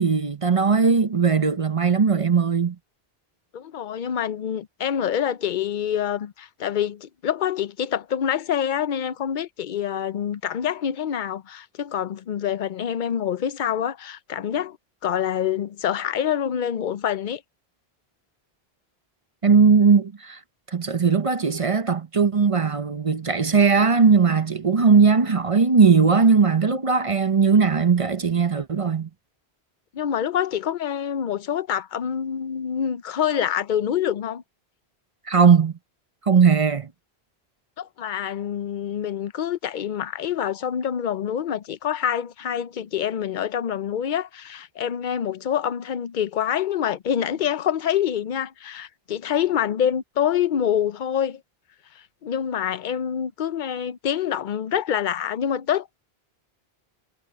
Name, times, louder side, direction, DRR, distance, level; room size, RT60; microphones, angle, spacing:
voice 1, 0.0-2.8 19.4-20.4 20.7-29.1 35.3-35.7 36.2-36.9, right 5 dB, 35° right, 0.8 m, -18 dB
voice 2, 3.5-14.8 15.0-17.4 29.9-34.4 37.8-51.4 52.2-56.0, left 9 dB, 55° left, 0.7 m, -26 dB
omnidirectional pair, 1.1 m